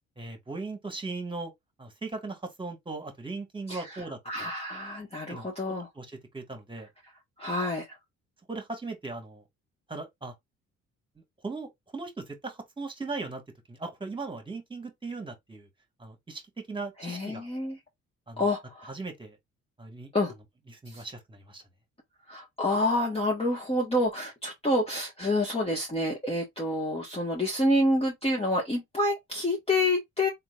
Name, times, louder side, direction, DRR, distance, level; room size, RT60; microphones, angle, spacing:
voice 1, 0.2-1.5 1.8-4.5 5.3-6.9 8.5-9.4 9.9-10.3 11.4-13.4 13.7-15.7 16.0-16.4 16.7-17.5 18.3-18.5 18.8-19.4 19.8-20.1 20.7-21.6, right 3 dB, 15° right, 1.8 m, -38 dB
voice 2, 4.3-5.9 7.4-7.9 17.0-17.8 18.4-18.9 20.1-20.3 20.9-21.0 22.3-30.3, left 1 dB, 20° left, 1.6 m, -28 dB
4.3 x 3.8 x 2.5 m
cardioid pair, 90°, 30 cm